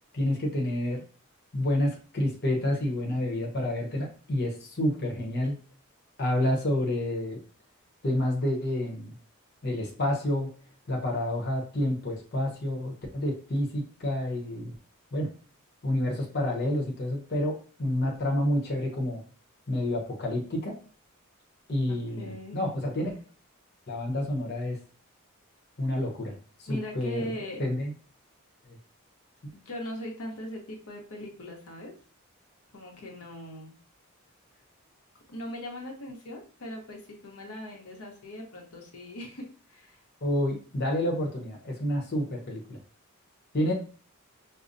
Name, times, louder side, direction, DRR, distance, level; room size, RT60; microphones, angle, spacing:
voice 1, 0.1-1.0 1.5-5.5 6.2-7.4 8.0-9.2 9.6-10.5 10.9-14.7 15.1-15.3 15.8-19.2 19.7-20.8 21.7-23.1 23.9-24.8 25.8-26.3 26.6-27.2 27.6-27.9 28.7-28.8 40.2-42.8 43.5-43.7, left 1 dB, 50° left, 0 dB, 0.8 m, -29 dB
voice 2, 21.9-22.6 26.7-27.6 29.5-31.9 32.7-33.7 35.3-40.0, left 1 dB, 90° left, 1 dB, 0.9 m, -40 dB
5.2 x 2.0 x 2.6 m, 0.39 s
head